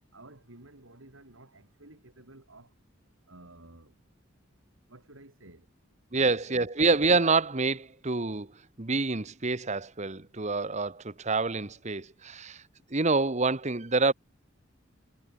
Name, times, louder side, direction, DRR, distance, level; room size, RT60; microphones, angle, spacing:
voice 1, 0.1-2.7 3.3-4.0 4.9-5.7, right 2 dB, 75° right, 3.8 m, -52 dB
voice 2, 6.1-8.5 8.8-12.6 12.9-14.1, right 3 dB, 35° right, 1.3 m, -27 dB
head